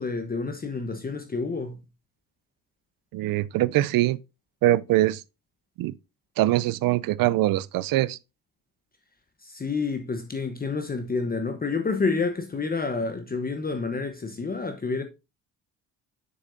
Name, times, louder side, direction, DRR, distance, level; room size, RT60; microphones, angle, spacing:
voice 1, 0.0-1.8 9.4-15.0, left 4 dB, 25° left, 1.0 m, -29 dB
voice 2, 3.1-4.2 4.6-5.2 5.8-5.9 6.4-8.2, right 16 dB, 60° right, 0.5 m, -23 dB
7.7 x 6.3 x 2.6 m
supercardioid pair, 70°, 38 cm